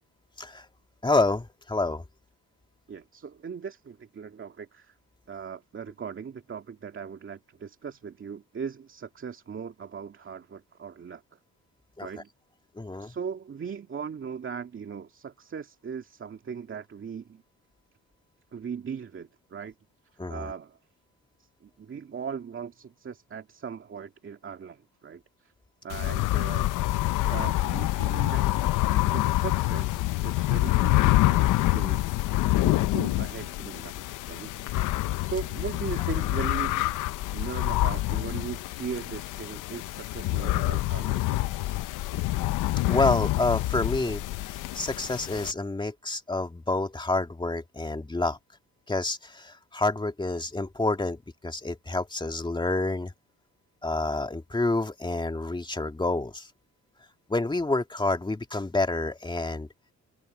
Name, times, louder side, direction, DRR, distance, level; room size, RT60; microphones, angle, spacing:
voice 1, 1.0-2.0 12.0-12.1 12.8-13.1 20.2-20.5 42.9-44.2 44.5-48.4 48.9-53.1 53.8-56.5 57.3-59.7, left 2 dB, 15° left, 2.5 m, -28 dB
voice 2, 2.9-4.9 5.3-11.4 12.0-12.3 13.0-17.4 18.5-19.7 20.3-20.8 21.4-25.5 25.8-27.0 27.3-32.2 32.5-33.9 34.3-34.7 35.2-36.8 37.3-41.7, right 6 dB, 40° right, 2.3 m, -39 dB
sound 1, 25.9-45.5, left 17 dB, 90° left, 0.8 m, -26 dB
cardioid pair, 90°, 30 cm